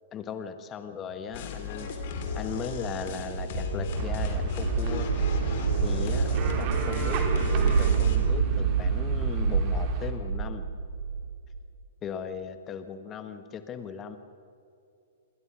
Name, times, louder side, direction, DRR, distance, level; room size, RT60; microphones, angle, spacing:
voice 1, 0.1-2.0 2.3-5.1 5.8-10.6 12.0-14.2, left 7 dB, 20° left, 10 dB, 1.4 m, -38 dB
sound 1, 1.3-8.2, left 7 dB, 45° left, 3.7 m, -36 dB
sound 2, 1.5-11.6, right 6 dB, 65° right, 4.0 m, -28 dB
sound 3, 3.9-10.1, right 5 dB, 35° right, 4.1 m, -35 dB
27.5 x 23.0 x 6.4 m, 2.5 s
figure-of-eight pair, 110°, 0 cm